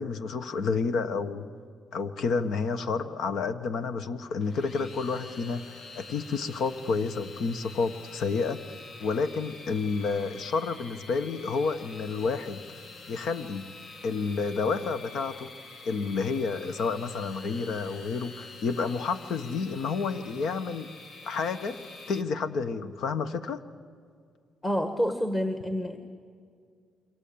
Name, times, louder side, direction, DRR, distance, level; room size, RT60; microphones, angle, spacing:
voice 1, 0.0-1.5 1.9-5.6 5.9-8.6 9.0-12.6 13.1-13.7 14.0-15.5 15.8-20.9 21.2-21.8 22.1-23.6, left 4 dB, 70° left, 11 dB, 1.4 m, -30 dB
sound 1, 4.4-22.2, left 3 dB, 55° left, 2.1 m, -47 dB
voice 2, 24.6-26.0, equal, 15° left, 7 dB, 1.8 m, -28 dB
28.0 x 24.5 x 8.9 m, 2.2 s
cardioid pair, 90°, 0 cm